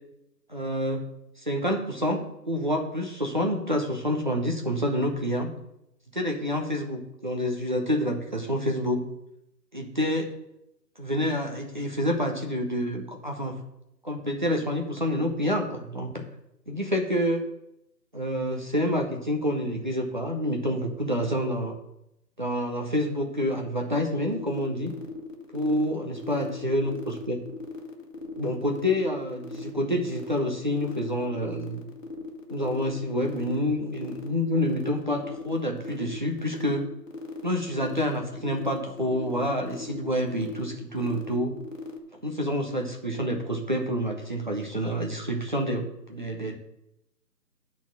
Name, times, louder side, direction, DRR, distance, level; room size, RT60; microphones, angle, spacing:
voice 1, 0.5-1.1 1.4-2.2 2.5-5.5 6.1-9.0 9.7-10.3 11.0-13.6 14.0-16.2 16.7-17.4 18.1-21.8 22.4-24.9 25.5-27.4 28.4-31.8 32.5-36.9 37.4-41.6 42.2-46.6, equal, 30° right, 2 dB, 0.8 m, -28 dB
sound 1, 24.3-42.0, left 3 dB, 50° left, 1.4 m, -39 dB
8.7 x 4.1 x 6.8 m, 0.84 s
figure-of-eight pair, 165°, 50 cm